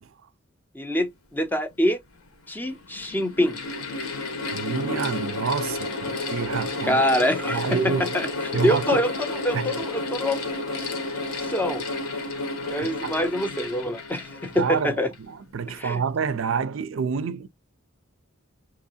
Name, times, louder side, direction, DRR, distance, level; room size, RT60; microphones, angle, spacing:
voice 1, 0.7-2.0 2.5-3.6 6.8-8.3 8.6-9.1 9.4-10.4 11.4-11.8 12.7-15.1 15.8-16.0, equal, 10° left, 0.5 m, -25 dB
Mechanical fan, 1.7-1.8 2.6-15.3, left 2 dB, 75° left, 1.2 m, -31 dB
voice 2, 4.5-7.0 7.5-8.1 8.5-9.0 9.5-9.7 12.8-13.2 14.5-17.5, right 6 dB, 65° right, 0.4 m, -28 dB
3.0 x 2.7 x 4.1 m
head